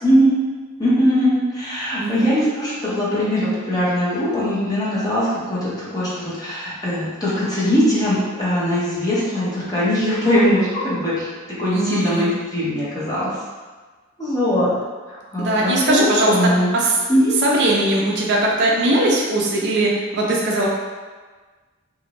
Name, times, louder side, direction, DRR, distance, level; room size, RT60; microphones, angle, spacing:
voice 1, 0.0-0.3 0.8-13.3 14.2-14.7 15.1-16.7 17.1-17.3, equal, 20° left, -9 dB, 0.7 m, -20 dB
voice 2, 2.0-2.3 11.7-12.3 15.4-16.3 16.7-16.9 17.4-20.7, right 1 dB, 55° right, -2 dB, 0.4 m, -19 dB
2.5 x 2.0 x 2.9 m, 1.4 s
head